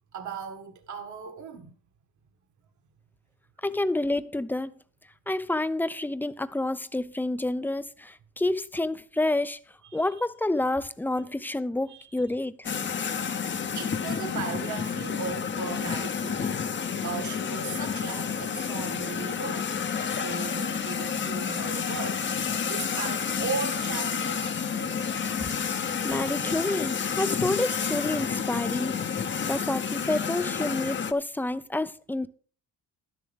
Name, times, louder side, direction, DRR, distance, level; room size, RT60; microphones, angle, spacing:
voice 1, 0.1-1.7 9.9-10.1 11.9-12.2 13.1-13.4 13.8-19.7 20.1-25.2, right 6 dB, 50° right, 1.7 m, -37 dB
voice 2, 3.6-4.7 5.3-9.6 9.9-12.7 26.0-29.0 29.4-32.3, left 2 dB, 5° left, 0.6 m, -29 dB
sound 1, 12.6-31.1, left 7 dB, 30° left, 0.9 m, -30 dB
12.5 x 11.0 x 3.5 m
cardioid pair, 125°, 37 cm